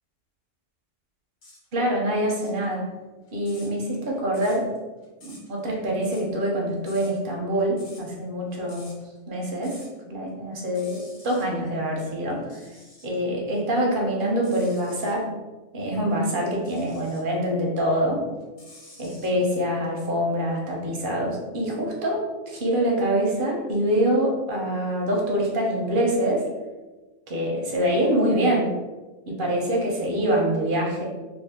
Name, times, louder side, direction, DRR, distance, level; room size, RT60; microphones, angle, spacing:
sound 1, 1.4-1.6 2.2-10.0 10.3-11.5 12.3-13.2 13.7-15.2 16.5-17.3 17.8-19.3, left 2 dB, 75° left, 1.4 m, -50 dB
voice 1, 1.7-2.9 3.3-4.7 5.2-9.8 10.1-12.7 13.0-15.3 15.7-18.3 19.0-26.5 27.3-28.8 29.3-31.1, equal, 50° right, -2 dB, 0.8 m, -25 dB
2.7 x 2.6 x 3.5 m, 1.2 s
omnidirectional pair, 1.3 m